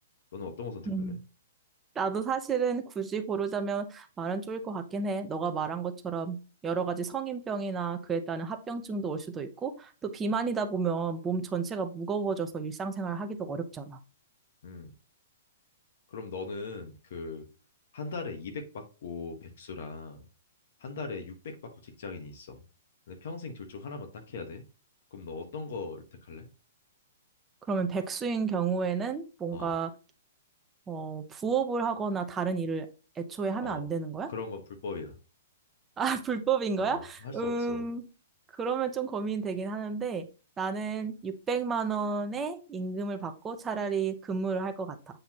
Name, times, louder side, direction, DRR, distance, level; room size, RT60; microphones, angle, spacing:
voice 1, 0.3-1.2 14.6-14.9 16.1-17.5 17.9-20.2 20.8-22.6 23.1-24.6 25.1-26.5 29.5-29.7 33.6-33.9 34.3-35.2 36.8-37.8, left 4 dB, 60° left, 5 dB, 1.4 m, -40 dB
voice 2, 0.9-1.2 2.0-6.4 6.6-14.0 27.7-29.9 30.9-32.9 33.2-34.3 36.0-38.0 38.6-40.3 40.6-45.0, right 5 dB, 15° right, 6 dB, 0.7 m, -31 dB
7.8 x 4.1 x 3.0 m, 0.33 s
hypercardioid pair, 155°, 0 cm